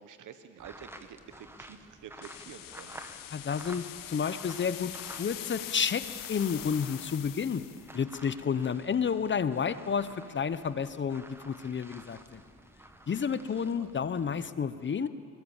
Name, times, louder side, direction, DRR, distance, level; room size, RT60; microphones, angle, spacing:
voice 1, 0.0-3.0 13.8-13.9, right 8 dB, 65° right, 10 dB, 1.2 m, -49 dB
sound 1, 0.6-5.6 5.9-14.5, right 1 dB, 5° right, 1.4 m, -51 dB
sound 2, 2.2-7.9, left 13 dB, 85° left, 0.9 m, -43 dB
voice 2, 3.3-6.0 6.3-7.6 7.9-12.4 13.1-15.1, left 6 dB, 35° left, 14 dB, 0.8 m, -31 dB
22.0 x 20.5 x 7.3 m, 2.7 s
cardioid pair, 100°, 33 cm